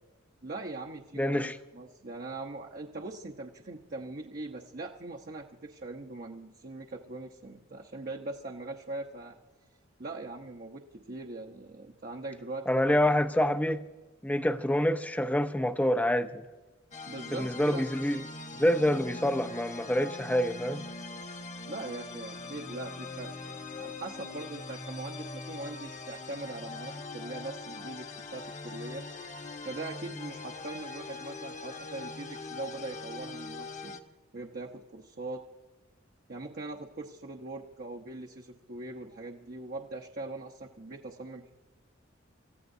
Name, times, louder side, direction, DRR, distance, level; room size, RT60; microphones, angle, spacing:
voice 1, 0.4-9.4 10.0-13.0 17.1-17.9 21.7-28.1 28.3-29.0 29.6-33.9 34.3-35.4 36.3-41.5, right 2 dB, 50° right, 0.9 m, -41 dB
voice 2, 1.2-1.6 12.7-13.9 14.2-16.4 17.4-18.2 18.6-20.9, left 1 dB, 10° left, 0.6 m, -27 dB
sound 1, 16.9-34.0, left 3 dB, 35° left, 1.1 m, -42 dB
28.0 x 15.0 x 2.7 m
head